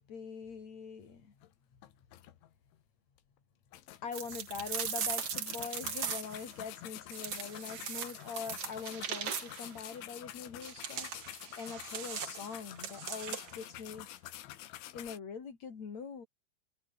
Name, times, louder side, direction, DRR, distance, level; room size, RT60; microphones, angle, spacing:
voice 1, 0.0-1.4 4.0-11.1 11.5-14.1 14.9-16.3, left 6 dB, 40° left, 4.2 m, -43 dB
sound 1, 1.4-1.5 1.8-2.8 3.2-3.3 3.7-15.2, left 13 dB, 75° left, 4.0 m, -48 dB
sound 2, 4.1-6.5 7.1-9.7 10.6-13.6, right 7 dB, 45° right, 2.2 m, -39 dB
omnidirectional pair, 5.6 m